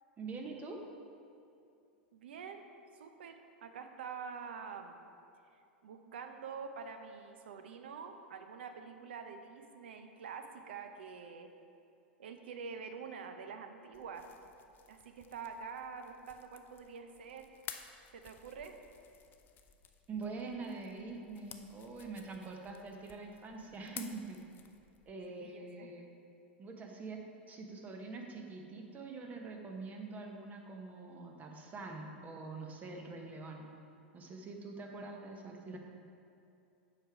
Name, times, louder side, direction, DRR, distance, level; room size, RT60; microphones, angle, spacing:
voice 1, 0.2-0.8 20.1-24.4 25.1-26.1 26.6-27.2 27.5-33.7 34.1-35.8, right 3 dB, 25° right, 2 dB, 1.1 m, -44 dB
voice 2, 2.1-2.7 2.9-5.0 5.5-11.5 12.2-14.3 14.9-17.5 18.1-18.8 25.3-25.9, right 6 dB, 70° right, 7 dB, 0.6 m, -46 dB
sound 1, 13.9-25.1, left 8 dB, 35° left, 0.5 m, -54 dB
7.9 x 5.2 x 4.7 m, 2.6 s
hypercardioid pair, 95°, 6 cm